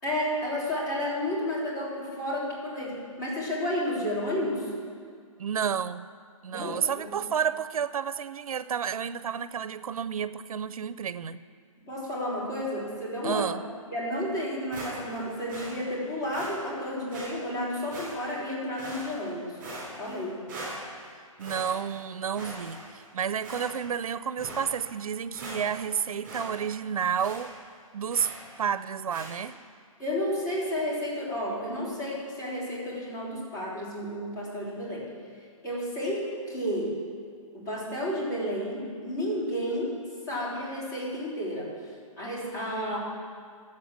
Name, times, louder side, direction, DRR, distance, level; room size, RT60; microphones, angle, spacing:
voice 1, 0.0-4.7 6.5-7.1 11.9-13.5 13.9-19.6 20.0-20.4 30.0-35.1 35.6-36.9 37.5-40.0 40.3-41.7 42.2-43.0, left 1 dB, 30° left, -6 dB, 3.5 m, -31 dB
voice 2, 5.4-6.1 6.4-11.4 13.2-13.6 21.4-27.5 27.9-28.3 28.6-29.6, right 7 dB, 80° right, 15 dB, 0.5 m, -31 dB
sound 1, 14.7-15.2 15.5-15.7 16.3-16.5 17.1-17.3 17.9-18.4 18.8-19.3 19.6-20.2 20.5-21.1 21.4-22.0 22.3-23.0 23.4-23.9 24.4-24.6 25.0-25.1 25.3-25.9 26.2-26.5 26.7-26.8 27.2-27.5 28.1-28.4 29.1-29.3, right 1 dB, 10° right, 3.3 m, -41 dB
11.5 x 7.7 x 7.3 m, 2.1 s
hypercardioid pair, 175°, 18 cm